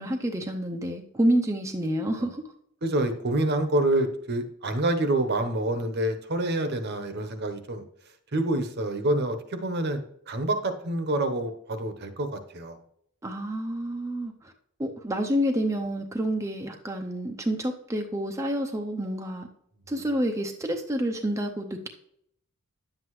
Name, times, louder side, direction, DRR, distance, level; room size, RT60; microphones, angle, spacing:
voice 1, 0.0-2.4 13.2-14.5 14.8-19.5 19.9-21.9, equal, 15° right, 2 dB, 0.6 m, -28 dB
voice 2, 2.8-7.8 8.3-12.8, right 1 dB, 50° right, 8 dB, 0.9 m, -27 dB
10.5 x 7.7 x 3.1 m, 0.70 s
head